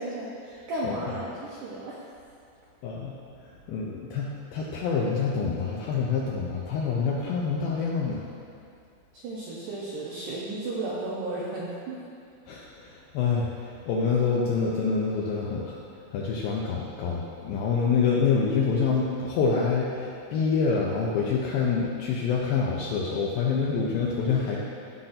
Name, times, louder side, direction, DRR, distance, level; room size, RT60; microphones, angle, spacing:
voice 1, 0.0-1.9 9.1-12.0, right 2 dB, 80° right, -6 dB, 1.8 m, -34 dB
voice 2, 2.8-3.1 3.7-8.2 12.5-15.8 16.1-24.6, left 5 dB, 90° left, -3 dB, 2.1 m, -26 dB
16.0 x 5.7 x 2.6 m, 2.4 s
omnidirectional pair, 4.9 m